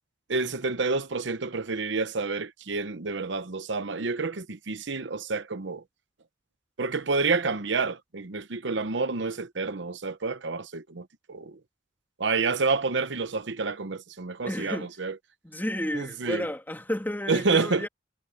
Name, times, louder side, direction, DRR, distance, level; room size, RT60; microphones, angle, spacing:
voice 1, 0.3-5.8 6.8-11.5 12.2-15.1 15.9-16.5 17.3-17.8, right 4 dB, 70° right, 0.9 m, -29 dB
voice 2, 14.4-14.9 15.4-17.9, left 1 dB, 10° left, 3.0 m, -32 dB
head